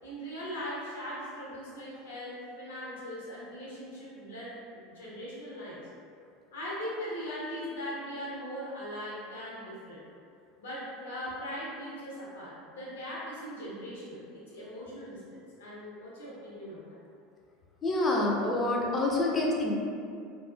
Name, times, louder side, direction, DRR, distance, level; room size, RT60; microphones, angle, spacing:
voice 1, 0.0-5.8 6.5-10.0 10.6-17.0, equal, 85° left, -7 dB, 0.8 m, -40 dB
voice 2, 17.8-19.8, left 2 dB, 30° left, -1 dB, 0.5 m, -27 dB
2.4 x 2.3 x 2.4 m, 2.4 s
hypercardioid pair, 85°, 0 cm